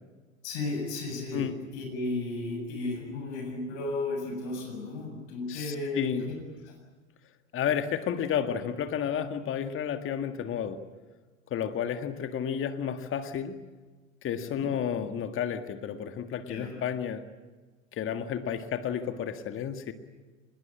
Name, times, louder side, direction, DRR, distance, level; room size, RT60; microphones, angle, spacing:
voice 1, 0.4-6.4 6.6-6.7 14.4-14.7 16.5-16.7, left 2 dB, 60° left, 2 dB, 7.4 m, -34 dB
voice 2, 5.5-6.3 7.5-10.8 11.5-13.6 14.2-17.3 17.9-19.9, left 8 dB, 35° left, 8 dB, 1.8 m, -31 dB
26.0 x 21.5 x 8.8 m, 1.3 s
figure-of-eight pair, 80°, 38 cm